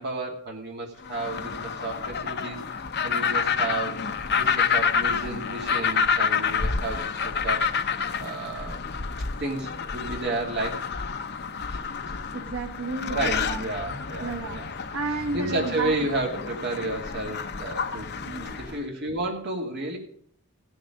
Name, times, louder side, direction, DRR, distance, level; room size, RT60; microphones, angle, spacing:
voice 1, 0.0-2.6 3.0-4.0 4.3-8.9 9.4-10.9 13.1-14.7 15.1-18.1 18.6-20.0, right 2 dB, 50° right, 0 dB, 2.4 m, -32 dB
sound 1, 1.0-18.8, left 6 dB, 50° left, 0.8 m, -29 dB
voice 2, 12.3-13.6 14.2-14.6 14.9-16.1 18.3-18.8, right 3 dB, 75° right, 2 dB, 1.3 m, -32 dB
16.0 x 7.3 x 5.2 m, 0.62 s
head